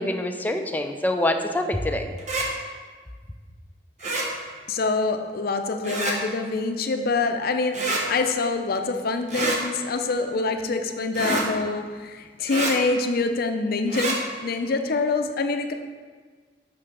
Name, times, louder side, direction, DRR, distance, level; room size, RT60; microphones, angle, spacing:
voice 1, 0.0-2.1, left 1 dB, 10° left, 5 dB, 0.5 m, -25 dB
sound 1, 2.2-2.5 4.0-4.3 5.8-6.2 7.7-8.0 9.3-9.6 11.1-11.5 12.5-12.7 13.9-14.2, right 2 dB, 45° right, 1.1 m, -26 dB
voice 2, 4.7-15.7, left 3 dB, 60° left, 6 dB, 0.6 m, -25 dB
6.1 x 5.9 x 4.6 m, 1.5 s
head